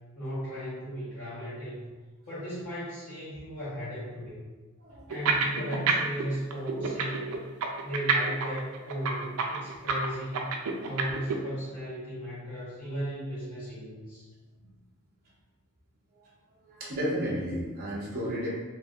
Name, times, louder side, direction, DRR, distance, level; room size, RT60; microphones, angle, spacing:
voice 1, 0.1-1.8 2.3-4.4 5.1-7.4 7.8-10.5 10.8-14.3, equal, 90° left, -11 dB, 1.4 m, -36 dB
sound 1, 5.1-6.2 6.5-11.4, right 5 dB, 80° right, 0.4 m, -27 dB
voice 2, 16.7-18.5, equal, 45° right, -6 dB, 0.8 m, -32 dB
3.3 x 2.7 x 2.4 m, 1.2 s
head